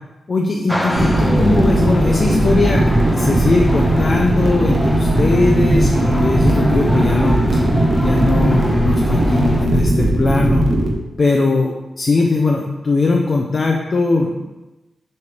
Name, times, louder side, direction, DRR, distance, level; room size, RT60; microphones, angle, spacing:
voice 1, 0.3-7.6 7.9-10.7 11.2-11.7 12.0-14.4, left 3 dB, 40° left, 0 dB, 0.6 m, -19 dB
sound 1, 0.7-9.7, equal, 5° left, 0.7 m, -24 dB
sound 2, 0.9-10.9, right 1 dB, 60° right, 1.1 m, -17 dB
6.9 x 3.3 x 5.0 m, 1.1 s
wide cardioid pair, 100°, 0 cm